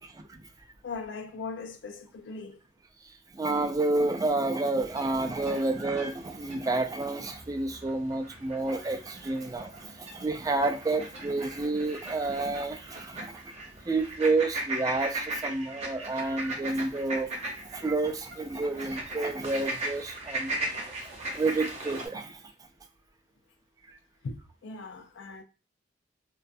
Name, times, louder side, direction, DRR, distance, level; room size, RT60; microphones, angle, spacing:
voice 1, 0.0-0.4 3.3-13.5 13.8-17.3 17.6-20.5 20.9-21.0 21.3-22.4, right 2 dB, 20° right, 0.3 m, -30 dB
voice 2, 0.8-2.6 22.2-22.3 24.2-25.4, left 4 dB, 85° left, 0.5 m, -39 dB
sound 1, 4.7-22.1, right 2 dB, 35° right, 0.7 m, -38 dB
2.3 x 2.2 x 2.6 m
head